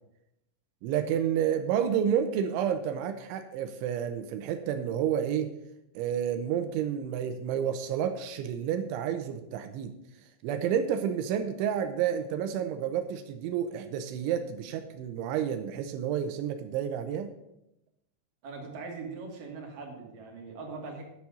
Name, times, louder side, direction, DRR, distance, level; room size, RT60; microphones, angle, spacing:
voice 1, 0.8-5.5 6.0-9.9 10.4-17.3, right 9 dB, 90° right, 8 dB, 3.2 m, -30 dB
voice 2, 18.4-21.0, right 4 dB, 50° right, 0 dB, 3.5 m, -41 dB
9.7 x 7.2 x 7.6 m, 0.85 s
omnidirectional pair, 5.5 m